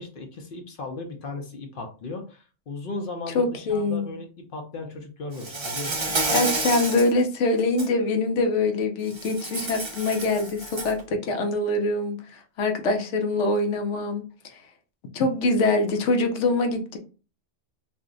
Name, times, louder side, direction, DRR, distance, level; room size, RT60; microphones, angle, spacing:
voice 1, 0.0-6.2, left 3 dB, 55° left, 3 dB, 0.7 m, -36 dB
voice 2, 3.3-4.1 6.3-14.2 15.1-17.0, left 2 dB, 75° left, 5 dB, 1.0 m, -24 dB
Insect, 5.4-7.1 7.6-7.9 9.1-11.0, right 2 dB, 35° right, 0.4 m, -29 dB
2.6 x 2.1 x 3.7 m, 0.34 s
omnidirectional pair, 1.2 m